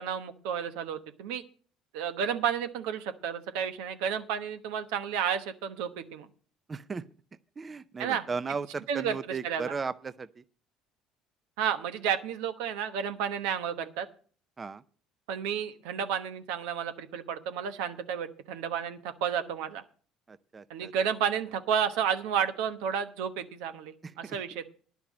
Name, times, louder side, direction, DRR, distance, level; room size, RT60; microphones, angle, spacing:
voice 1, 0.0-1.4 1.9-6.3 8.0-8.3 8.9-9.7 11.6-14.1 15.3-19.8 20.7-24.7, right 8 dB, 90° right, 9 dB, 1.1 m, -31 dB
voice 2, 6.7-7.0 7.6-10.4 14.6-14.8 20.3-20.9 24.0-24.4, right 5 dB, 30° right, 15 dB, 0.5 m, -36 dB
10.5 x 5.9 x 8.4 m, 0.43 s
cardioid pair, 100°, 0 cm